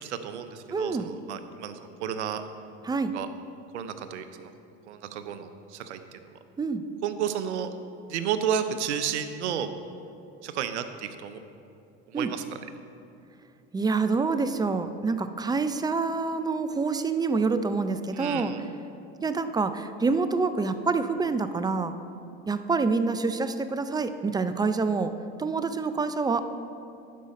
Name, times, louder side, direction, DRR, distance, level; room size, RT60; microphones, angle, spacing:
voice 1, 0.0-2.4 3.1-3.3 3.7-4.5 4.9-6.3 7.0-7.7 8.1-9.7 10.4-11.4 12.1-12.4 18.1-18.6, right 8 dB, 85° right, 10 dB, 0.7 m, -32 dB
voice 2, 0.7-1.1 2.8-3.1 6.6-6.8 12.1-12.3 13.7-18.5 19.2-21.9 22.5-25.1 25.4-26.4, right 4 dB, 10° right, 11 dB, 0.4 m, -27 dB
11.0 x 5.3 x 5.2 m, 2.6 s
hypercardioid pair, 85°, 33 cm